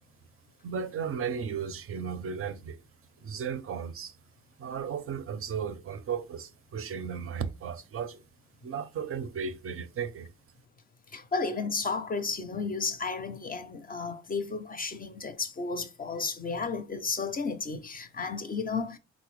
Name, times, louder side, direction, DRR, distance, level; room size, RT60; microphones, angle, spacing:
voice 1, 0.6-2.8 3.2-4.1 4.6-8.2 8.6-10.3, right 7 dB, 50° right, 0.4 m, -35 dB
voice 2, 11.1-19.0, left 4 dB, 30° left, 0.5 m, -33 dB
3.7 x 2.0 x 3.1 m
cardioid pair, 90°, 30 cm